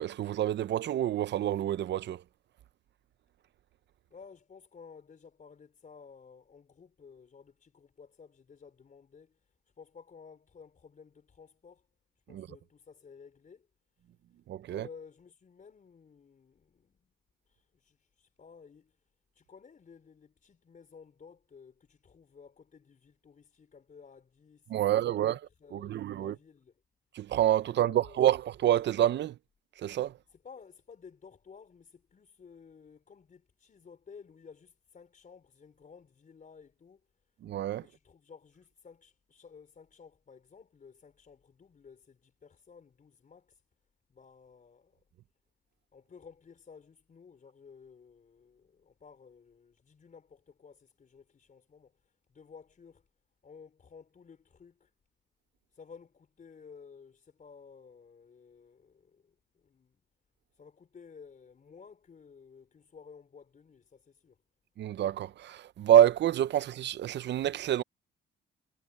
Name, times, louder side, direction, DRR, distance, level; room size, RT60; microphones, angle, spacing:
voice 1, 0.0-2.2 12.3-12.5 14.5-14.9 24.7-25.4 25.7-26.3 27.1-29.4 29.8-30.1 37.4-37.8 64.8-67.8, right 11 dB, 60° right, 0.7 m, -27 dB
voice 2, 4.1-11.9 12.3-13.7 14.7-17.1 17.5-19.0 19.3-26.7 27.8-28.4 30.3-37.0 37.8-43.6 44.1-45.0 45.9-53.0 53.4-54.9 55.7-60.0 60.5-64.4, left 5 dB, 40° left, 4.4 m, -54 dB
cardioid pair, 90°, 20 cm